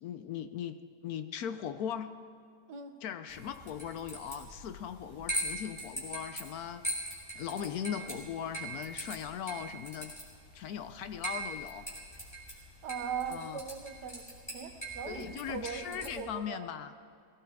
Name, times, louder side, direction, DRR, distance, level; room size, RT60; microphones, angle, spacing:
voice 1, 0.0-0.8 1.0-2.1 3.0-6.8 7.3-10.1 10.5-11.8 13.3-13.6 15.0-16.9, left 9 dB, 70° left, 10 dB, 1.0 m, -39 dB
sound 1, 3.3-16.2, right 1 dB, 15° left, 3.2 m, -42 dB
voice 2, 12.8-14.3 14.5-16.6, right 7 dB, 75° right, 7 dB, 1.6 m, -40 dB
19.5 x 16.5 x 3.5 m, 2.3 s
omnidirectional pair, 1.8 m